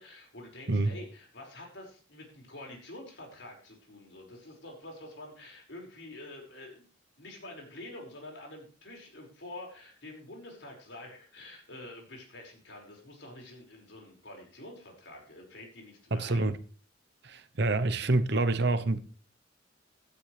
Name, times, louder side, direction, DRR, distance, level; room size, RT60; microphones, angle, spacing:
voice 1, 0.0-6.8 7.2-16.5, left 1 dB, 70° left, 5.7 m, -47 dB
voice 2, 16.1-16.6 17.2-19.0, right 2 dB, 60° right, 0.9 m, -27 dB
16.5 x 12.5 x 3.4 m
head